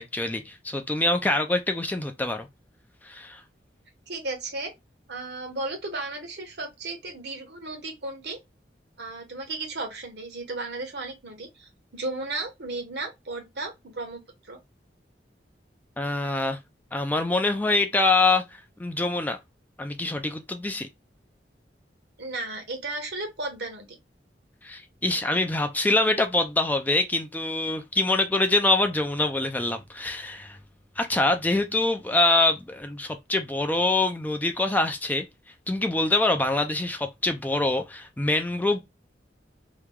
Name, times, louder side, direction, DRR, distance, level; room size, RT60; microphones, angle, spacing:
voice 1, 0.0-2.5 3.0-3.4 16.0-16.6 16.9-18.4 18.8-19.4 19.8-20.9 24.6-30.6 31.0-35.2 35.7-38.8, left 2 dB, 10° left, 0.3 m, -25 dB
voice 2, 4.1-4.7 5.1-8.4 9.0-14.6 22.2-24.0, right 2 dB, 70° right, 1.1 m, -34 dB
2.9 x 2.3 x 3.5 m
head